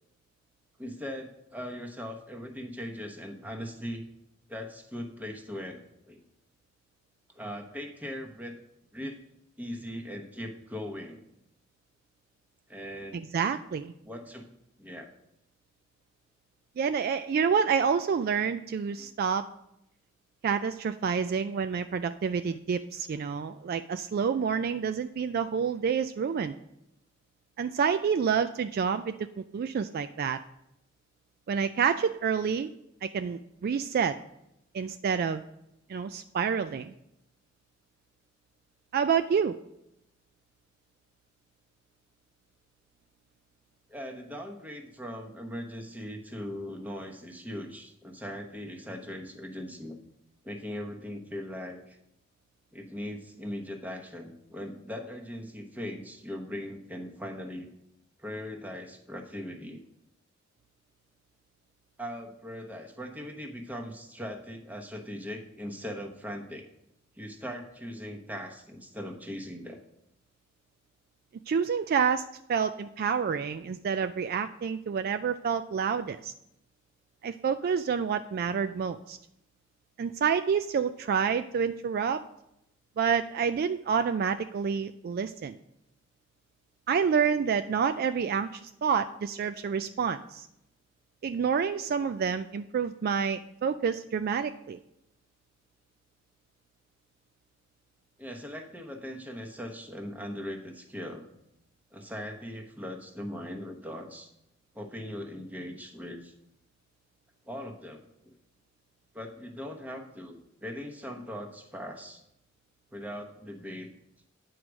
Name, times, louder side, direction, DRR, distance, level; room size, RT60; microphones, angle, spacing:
voice 1, 0.8-4.0 4.5-6.2 7.3-8.6 8.9-9.2 9.6-11.2 12.7-13.2 14.1-14.5 14.8-15.1 19.0-19.1 43.9-50.0 50.4-52.0 52.7-57.7 58.2-59.8 62.0-66.7 67.2-69.8 98.2-101.2 101.9-104.3 104.7-106.3 107.5-108.4 109.1-112.2 112.9-113.9, equal, 10° right, 2 dB, 1.0 m, -40 dB
voice 2, 13.1-13.9 16.8-19.4 20.4-26.6 27.6-29.2 29.5-30.4 31.5-32.7 33.0-34.1 34.7-35.4 35.9-36.9 38.9-39.5 71.5-76.3 77.2-79.2 80.0-82.2 83.0-85.6 86.9-90.5 91.2-94.8, right 6 dB, 50° right, 10 dB, 0.3 m, -28 dB
9.1 x 4.7 x 6.2 m, 0.80 s
head